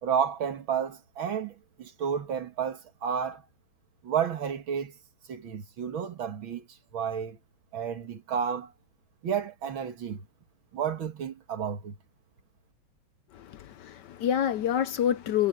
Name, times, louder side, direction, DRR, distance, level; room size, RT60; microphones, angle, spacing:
voice 1, 0.0-3.4 4.0-4.9 5.3-6.7 6.9-7.4 7.7-8.7 9.2-10.2 10.7-12.0, right 7 dB, 75° right, 2.5 m, -31 dB
voice 2, 13.3-15.5, left 9 dB, 70° left, 1.1 m, -27 dB
omnidirectional pair, 2.3 m